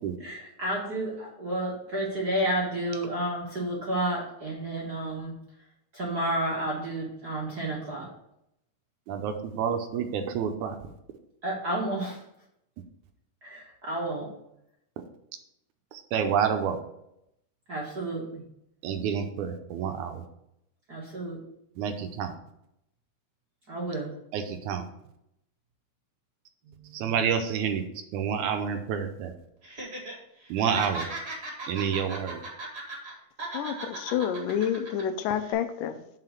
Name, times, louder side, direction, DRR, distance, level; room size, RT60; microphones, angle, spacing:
voice 1, 0.2-5.4 5.9-8.1 11.4-12.2 13.4-14.3 17.7-18.4 20.9-21.4 23.7-24.1 26.6-27.0, right 1 dB, 50° right, -4 dB, 1.2 m, -31 dB
voice 2, 9.1-10.8 15.0-15.1 15.9-16.8 18.8-20.2 21.8-22.3 24.3-24.9 26.9-27.8 28.1-29.3 30.5-31.1 31.7-32.4, right 7 dB, 75° right, 6 dB, 2.0 m, -28 dB
Laughter, 29.6-30.1 30.4-33.1 33.4-35.0 35.4-35.5, right 2 dB, 25° right, 1.5 m, -37 dB
voice 3, 33.5-36.0, left 9 dB, 85° left, 9 dB, 2.3 m, -29 dB
5.8 x 4.9 x 6.4 m, 0.80 s
omnidirectional pair, 3.7 m